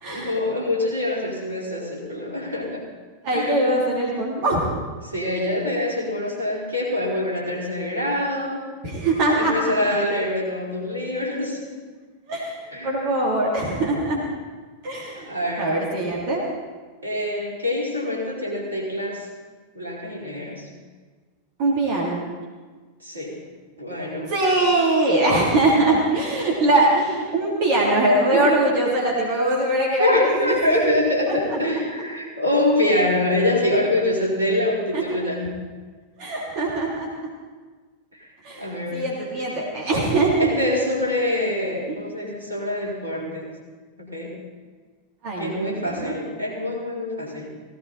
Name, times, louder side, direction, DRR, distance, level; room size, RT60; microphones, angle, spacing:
voice 1, 0.1-2.9 3.3-3.7 5.0-8.7 9.3-11.6 12.7-13.2 15.1-15.8 17.0-19.3 19.7-20.7 23.0-23.4 23.8-24.3 28.3-28.5 30.0-35.6 38.1-38.3 38.6-39.1 40.4-43.6 44.0-44.4 45.4-47.5, left 1 dB, 80° right, -4 dB, 5.0 m, -25 dB
voice 2, 3.2-4.6 8.8-9.5 12.3-12.5 12.8-14.2 14.8-15.3 15.6-16.4 21.6-22.2 24.3-30.9 31.3-31.4 34.9-35.0 36.2-37.1 38.4-40.5 45.2-46.1, right 2 dB, 45° right, -3 dB, 3.5 m, -22 dB
18.0 x 17.0 x 4.4 m, 1.4 s
figure-of-eight pair, 90°, 0 cm